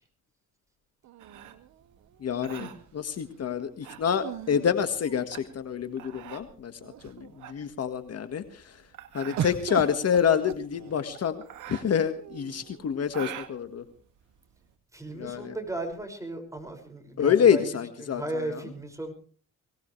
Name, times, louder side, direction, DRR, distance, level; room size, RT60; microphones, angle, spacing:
sound 1, 1.0-2.1 4.1-5.7 6.4-6.5 6.8-7.4 9.4-11.2 12.2-12.9, right 10 dB, 65° right, 1.3 m, -38 dB
sound 2, 1.2-14.7, right 11 dB, 80° right, 2.3 m, -45 dB
voice 1, 2.2-8.8 9.1-11.4 11.7-13.8 15.1-15.6 17.2-18.6, left 8 dB, 55° left, 9 dB, 1.7 m, -27 dB
voice 2, 14.9-17.7 18.0-19.1, right 2 dB, 10° right, 5 dB, 6.0 m, -35 dB
23.5 x 18.5 x 3.3 m, 0.41 s
cardioid pair, 90°, 30 cm